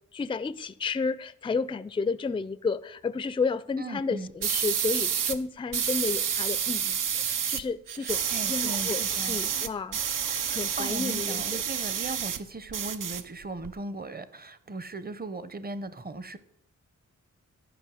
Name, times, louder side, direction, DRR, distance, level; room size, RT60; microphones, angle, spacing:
voice 1, 0.1-11.6, left 4 dB, 15° left, 0.4 m, -32 dB
voice 2, 3.8-4.3 8.0-9.6 10.8-16.4, right 2 dB, 30° right, 0.7 m, -38 dB
sound 1, 4.4-5.4 5.7-7.6 7.9-12.4 12.7-13.7, right 8 dB, 85° right, 0.6 m, -29 dB
11.0 x 5.5 x 6.2 m
wide cardioid pair, 100°, 31 cm